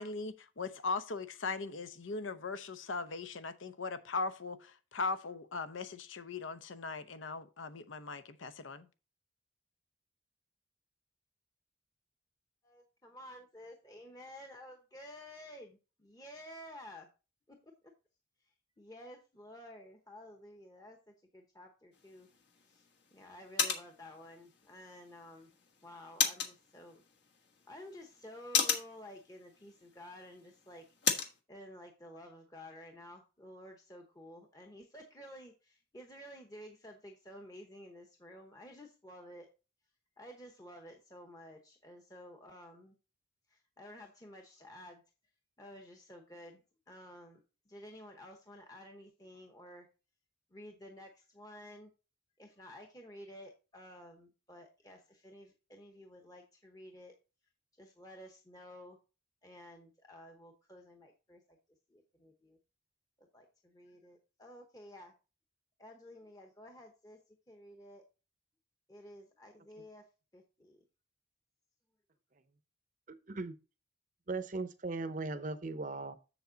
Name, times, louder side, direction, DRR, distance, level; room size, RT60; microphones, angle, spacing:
voice 1, 0.0-8.9, left 4 dB, 80° left, 0.8 m, -39 dB
voice 2, 12.6-17.1 17.5-17.9 18.8-22.3 22.6-22.9 23.1-25.5 25.8-27.0 27.7-30.9 31.5-39.5 40.2-43.0 43.5-45.0 45.6-46.6 46.9-49.9 50.5-51.9 52.4-57.1 57.8-59.0 59.4-61.6 61.9-62.6 63.2-65.1 65.8-68.0 68.9-70.1 70.3-70.8, left 1 dB, 20° left, 0.9 m, -52 dB
sound 1, 21.9-31.4, left 7 dB, 60° left, 1.3 m, -38 dB
voice 3, 73.1-73.5 74.3-76.2, right 3 dB, 40° right, 0.6 m, -38 dB
7.1 x 7.0 x 3.9 m
head